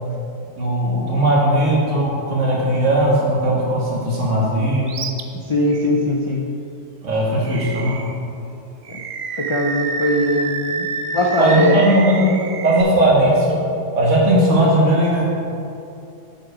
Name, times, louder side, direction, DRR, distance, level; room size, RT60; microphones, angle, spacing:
voice 1, 0.6-4.9 7.0-8.0 11.4-12.3 12.6-13.6 14.0-15.3, right 1 dB, 80° right, -5 dB, 2.0 m, -17 dB
Animal, 4.9-5.2 5.7-5.8 7.4-8.2 8.8-12.8, right 4 dB, 60° right, 0.4 m, -28 dB
voice 2, 5.5-6.5 8.9-9.0 9.4-10.9 11.1-11.8, left 1 dB, 50° left, -1 dB, 0.3 m, -20 dB
8.1 x 4.8 x 4.9 m, 2.6 s
omnidirectional pair, 1.2 m